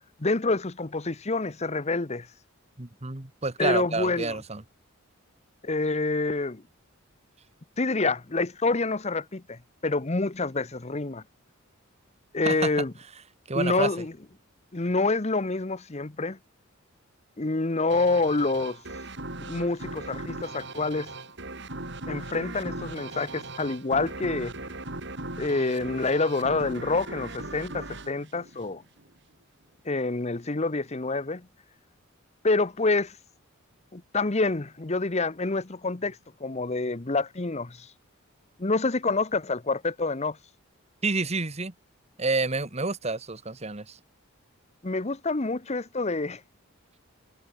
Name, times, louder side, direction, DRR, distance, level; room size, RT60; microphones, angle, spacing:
voice 1, 0.2-2.3 3.6-4.4 5.6-6.6 7.8-11.2 12.3-12.9 13.5-14.1 14.7-16.4 17.4-18.8 19.4-21.1 22.1-24.5 25.4-28.8 29.8-31.5 32.4-33.2 33.9-37.9 38.6-40.4 44.8-46.4, left 3 dB, 30° left, 0.9 m, -27 dB
voice 2, 2.8-4.6 12.5-12.9 13.5-13.9 41.0-41.7 42.2-44.0, right 3 dB, 30° right, 1.6 m, -29 dB
sound 1, 17.9-29.1, right 2 dB, 55° right, 8.0 m, -38 dB
head